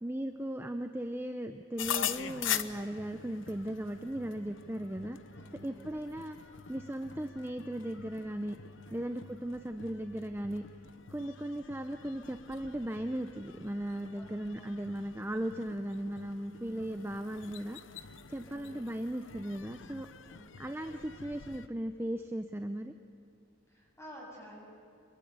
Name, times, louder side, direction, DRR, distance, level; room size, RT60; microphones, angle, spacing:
voice 1, 0.0-5.2 5.6-6.4 6.7-8.6 8.9-10.6 11.1-17.8 18.3-20.1 20.6-22.9, right 1 dB, 10° right, 7 dB, 0.7 m, -37 dB
sound 1, 1.8-21.7, left 9 dB, 80° left, 1.0 m, -43 dB
voice 2, 5.3-5.9 8.8-9.1 14.2-14.7 18.4-18.8 20.2-20.5 23.7-24.7, equal, 15° left, -2 dB, 7.8 m, -52 dB
26.0 x 22.5 x 9.5 m, 2.5 s
head